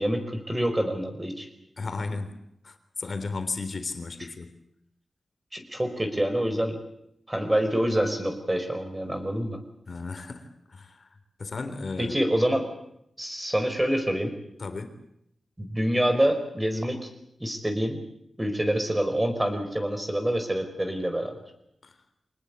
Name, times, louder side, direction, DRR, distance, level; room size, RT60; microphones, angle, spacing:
voice 1, 0.0-1.5 5.5-6.8 7.3-9.6 12.0-12.6 13.2-14.3 15.6-17.0 17.4-18.0 18.4-21.3, right 1 dB, 15° right, 6 dB, 5.1 m, -26 dB
voice 2, 1.8-2.4 2.6-4.5 9.9-12.2 14.6-15.0 21.8-21.9, left 3 dB, 55° left, 9 dB, 3.6 m, -35 dB
25.5 x 19.5 x 8.4 m, 0.77 s
wide cardioid pair, 85°, 0 cm